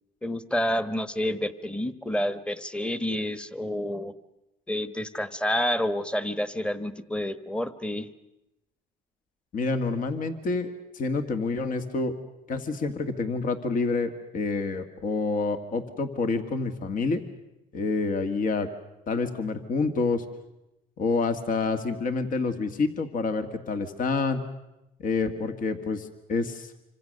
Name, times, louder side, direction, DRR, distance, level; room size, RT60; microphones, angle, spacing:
voice 1, 0.2-4.1 4.7-8.1, left 1 dB, 5° left, 13 dB, 1.2 m, -29 dB
voice 2, 9.5-12.2 12.5-17.2 17.7-18.7 19.1-20.2 21.0-24.4 25.0-26.7, left 4 dB, 55° left, 8 dB, 2.0 m, -28 dB
27.0 x 25.0 x 6.7 m, 0.91 s
cardioid pair, 110°, 17 cm